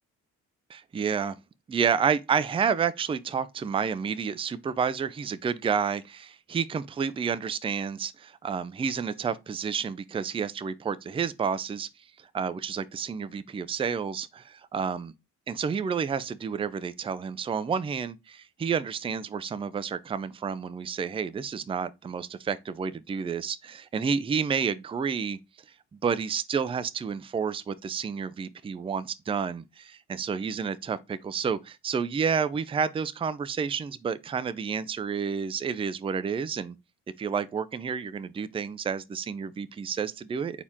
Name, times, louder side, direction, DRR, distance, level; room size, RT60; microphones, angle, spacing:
voice 1, 0.7-1.4 1.7-11.9 12.2-15.1 15.5-25.4 26.0-36.8 37.2-40.6, right 6 dB, 20° right, 0.4 m, -30 dB
4.4 x 2.9 x 3.5 m
cardioid pair, 90°, 30 cm